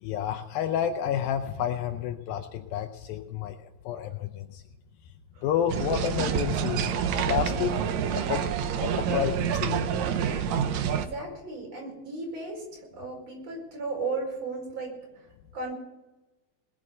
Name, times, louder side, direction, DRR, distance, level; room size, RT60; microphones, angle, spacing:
voice 1, 0.0-4.6 5.4-6.9 7.3-7.7 8.1-8.4 8.8-9.8, left 9 dB, 80° left, 7 dB, 2.4 m, -30 dB
sound 1, 5.7-11.1, right 8 dB, 75° right, 1.6 m, -27 dB
voice 2, 10.6-15.7, right 3 dB, 40° right, 0 dB, 5.7 m, -36 dB
21.0 x 7.8 x 6.6 m, 1.1 s
omnidirectional pair, 4.4 m